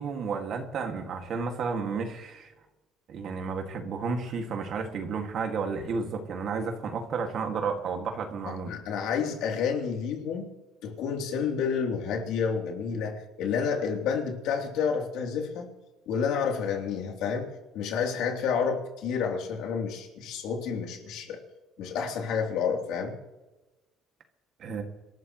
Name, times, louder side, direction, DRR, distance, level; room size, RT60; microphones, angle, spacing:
voice 1, 0.0-2.5 3.1-8.7 24.6-24.8, right 5 dB, 50° right, 4 dB, 2.2 m, -32 dB
voice 2, 8.7-10.5 10.8-15.7 16.1-17.5 17.7-21.4 21.8-23.2, left 6 dB, 75° left, 1 dB, 3.3 m, -29 dB
27.0 x 13.0 x 3.2 m, 1.1 s
cardioid pair, 135°, 0 cm